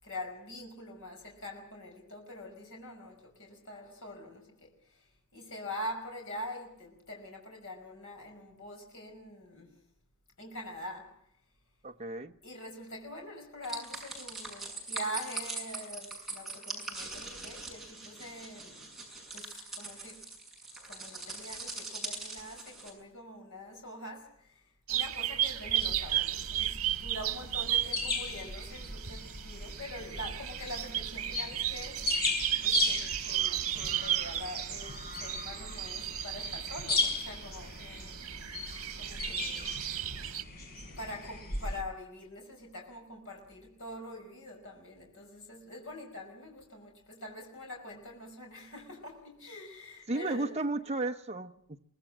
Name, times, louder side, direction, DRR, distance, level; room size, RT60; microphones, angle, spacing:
voice 1, 0.0-9.8 10.4-11.2 12.4-18.9 19.3-20.3 20.9-32.2 32.6-38.2 39.0-40.2 41.0-50.6, left 1 dB, 60° left, 5.5 m, -44 dB
voice 2, 11.8-12.3 50.1-51.8, right 2 dB, 30° right, 0.9 m, -33 dB
sound 1, 13.6-22.9, right 3 dB, ahead, 6.7 m, -42 dB
sound 2, 24.9-40.4, right 12 dB, 75° right, 1.5 m, -34 dB
sound 3, 25.8-41.8, left 2 dB, 45° left, 5.7 m, -37 dB
24.5 x 19.0 x 7.5 m
head